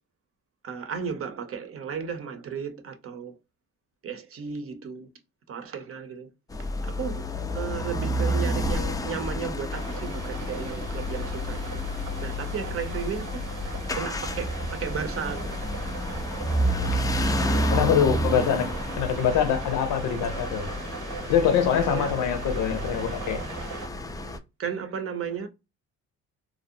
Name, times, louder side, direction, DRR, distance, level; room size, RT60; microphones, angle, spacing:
voice 1, 0.6-3.4 4.0-5.1 5.5-6.3 6.8-11.8 12.2-13.4 13.9-15.5 21.8-22.2 24.6-25.5, right 6 dB, 50° right, 0.7 m, -34 dB
sound 1, 6.5-24.4, equal, 15° left, 0.3 m, -30 dB
sound 2, 9.7-23.9, right 5 dB, 75° right, 0.9 m, -40 dB
voice 2, 17.7-20.7 21.3-23.4, left 8 dB, 90° left, 0.7 m, -24 dB
2.6 x 2.0 x 2.6 m
cardioid pair, 90°, 30 cm